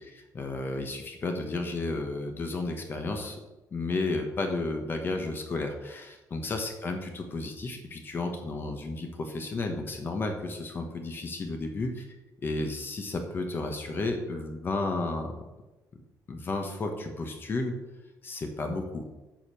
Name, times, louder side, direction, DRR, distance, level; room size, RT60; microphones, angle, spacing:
voice 1, 0.0-3.4 3.7-12.1 12.4-15.3 16.3-17.7 18.2-19.1, left 2 dB, 30° left, 4 dB, 1.1 m, -32 dB
8.9 x 5.2 x 7.5 m, 1.1 s
cardioid pair, 175°, 7 cm